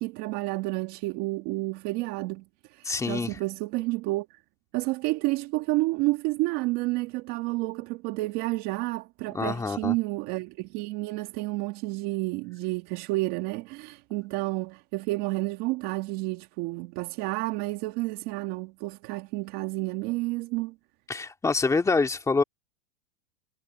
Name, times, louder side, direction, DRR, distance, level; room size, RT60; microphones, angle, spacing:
voice 1, 0.0-4.4 4.7-20.7, right 21 dB, 40° right, 2.0 m, -30 dB
voice 2, 2.8-3.4 9.3-10.0 21.1-22.4, left 4 dB, 10° left, 2.1 m, -26 dB
supercardioid pair, 160°, 37 cm